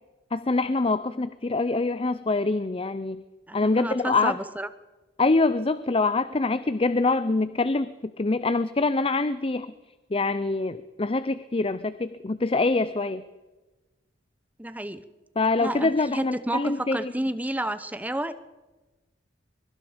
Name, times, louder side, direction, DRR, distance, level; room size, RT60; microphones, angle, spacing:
voice 1, 0.3-3.2 3.5-4.4 5.2-9.7 10.1-13.2 15.4-17.1, left 3 dB, 30° left, 14 dB, 0.6 m, -25 dB
voice 2, 3.5-4.7 14.6-15.0 15.6-18.3, right 1 dB, 10° right, 13 dB, 0.8 m, -30 dB
23.5 x 23.0 x 5.1 m, 1.2 s
head